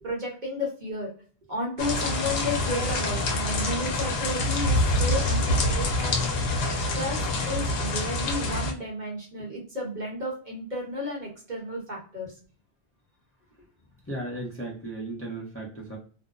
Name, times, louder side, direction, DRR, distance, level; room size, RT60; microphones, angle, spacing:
voice 1, 0.0-1.1 1.5-6.5 6.9-12.3, left 1 dB, 45° right, -3 dB, 1.1 m, -33 dB
sound 1, 1.8-8.7, left 2 dB, 70° left, 0.9 m, -26 dB
voice 2, 14.1-16.0, right 2 dB, 15° left, -4 dB, 0.6 m, -35 dB
2.6 x 2.1 x 2.3 m, 0.42 s
omnidirectional pair, 1.1 m